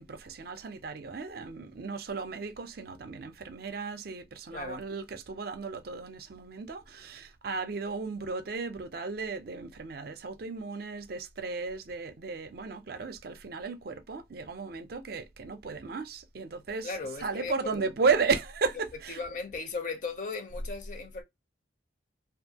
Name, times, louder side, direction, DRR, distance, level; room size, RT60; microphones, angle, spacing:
voice 1, 0.0-16.9 17.2-19.2, right 4 dB, 55° right, 0.5 m, -34 dB
voice 2, 4.5-4.8 16.8-17.8 19.1-21.2, left 4 dB, 45° left, 0.6 m, -37 dB
2.6 x 2.4 x 2.8 m
head